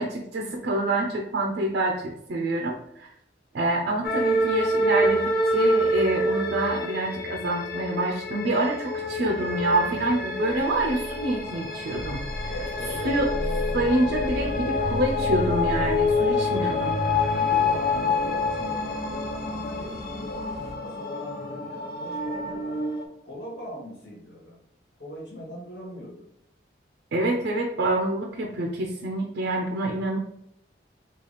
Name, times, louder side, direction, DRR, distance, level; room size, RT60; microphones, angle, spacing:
voice 1, 0.0-3.1 3.5-12.2 13.0-13.3 13.7-16.9 27.1-30.2, right 1 dB, 85° right, 1 dB, 0.5 m, -27 dB
sound 1, 4.0-23.1, left 2 dB, 50° left, 0.5 m, -27 dB
sound 2, 12.3-20.7, equal, 20° left, 1.3 m, -45 dB
voice 2, 12.5-13.2 16.5-16.9 17.3-22.7 23.2-24.6 25.0-26.3, equal, 70° left, -3 dB, 1.2 m, -41 dB
3.3 x 2.3 x 3.9 m, 0.75 s
head